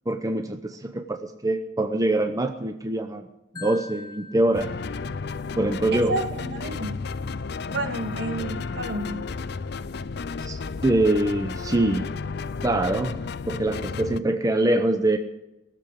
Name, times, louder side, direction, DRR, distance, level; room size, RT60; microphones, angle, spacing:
voice 1, 0.1-3.3 3.5-4.7 5.6-6.2 10.4-12.1 12.6-13.2 13.5-15.2, right 1 dB, 20° right, 6 dB, 0.8 m, -24 dB
Marimba xylophone, 3.6-5.6, left 4 dB, 20° left, 5.2 m, -44 dB
sound 1, 4.5-14.2, left 4 dB, 55° left, 0.5 m, -32 dB
voice 2, 5.9-7.0 7.7-9.3, right 2 dB, 60° right, 7 dB, 1.8 m, -31 dB
19.0 x 7.7 x 8.4 m, 0.94 s
head